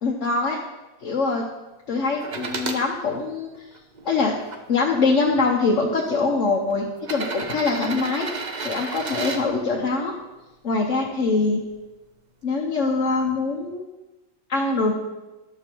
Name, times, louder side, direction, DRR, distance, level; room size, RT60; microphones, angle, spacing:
voice 1, 0.0-0.6 1.0-1.4 1.9-3.7 4.0-4.3 4.7-8.3 8.6-10.1 10.6-11.6 12.4-13.9 14.5-14.9, left 3 dB, 70° left, -2 dB, 1.3 m, -23 dB
sound 1, 2.2-2.8 3.5-4.6 5.6-5.7 7.0-9.4 11.3-11.4, right 3 dB, 40° right, 0.8 m, -32 dB
11.5 x 6.9 x 4.5 m, 1.1 s
omnidirectional pair, 1.3 m